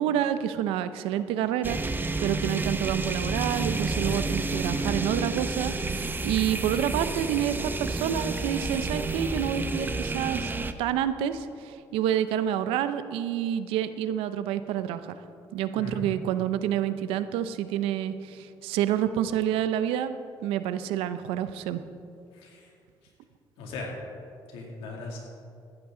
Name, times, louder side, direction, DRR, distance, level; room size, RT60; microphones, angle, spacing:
voice 1, 0.0-10.5 10.8-15.3 15.5-20.1 20.4-21.8, right 10 dB, 90° right, 12 dB, 0.6 m, -28 dB
sound 1, 1.6-10.7, right 3 dB, 20° right, 0.8 m, -30 dB
voice 2, 3.8-4.2 15.7-16.1 22.3-22.7 23.6-24.0 24.5-25.2, left 2 dB, 90° left, -1 dB, 2.5 m, -38 dB
14.5 x 12.0 x 3.8 m, 2.4 s
supercardioid pair, 75°, 9 cm